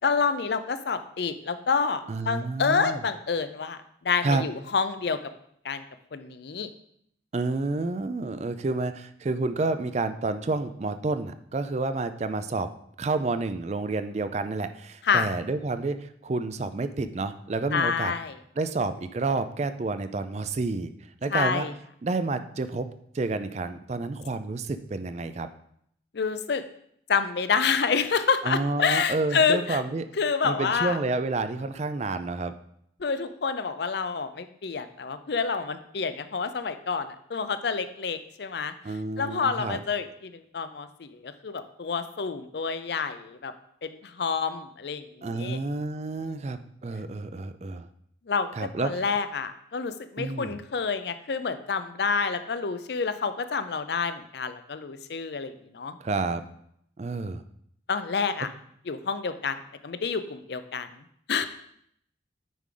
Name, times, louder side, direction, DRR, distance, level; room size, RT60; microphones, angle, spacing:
voice 1, 0.0-5.2 5.6-5.8 6.1-6.7 15.0-15.3 17.7-18.4 21.3-21.7 26.1-26.6 27.1-29.8 30.2-31.0 33.0-38.7 39.2-43.5 43.8-45.6 46.3-46.4 48.3-56.0 57.9-58.5 58.9-59.6 59.8-60.9 61.3-61.5, left 5 dB, 60° left, 11 dB, 0.5 m, -28 dB
voice 2, 2.1-3.0 4.2-4.4 7.3-12.7 13.0-18.1 18.6-20.9 21.2-21.7 22.0-22.9 23.1-25.5 28.4-30.0 30.4-32.5 38.8-39.8 45.2-47.9 48.6-49.0 50.2-50.6 56.0-56.4 57.0-57.4, right 3 dB, 35° right, 11 dB, 0.4 m, -29 dB
9.3 x 4.7 x 3.8 m, 0.70 s
head